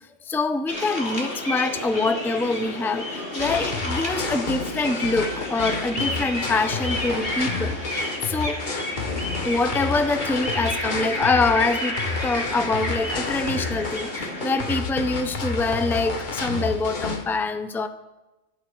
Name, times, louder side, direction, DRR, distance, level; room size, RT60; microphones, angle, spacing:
voice 1, 0.3-7.8 8.2-8.6 9.4-17.9, left 3 dB, 5° left, 10 dB, 0.3 m, -25 dB
sound 1, 0.7-14.8, left 1 dB, 60° left, 2.9 m, -31 dB
sound 2, 3.4-17.2, left 3 dB, 40° left, 1.3 m, -30 dB
24.0 x 9.3 x 4.7 m, 1.1 s
omnidirectional pair, 1.3 m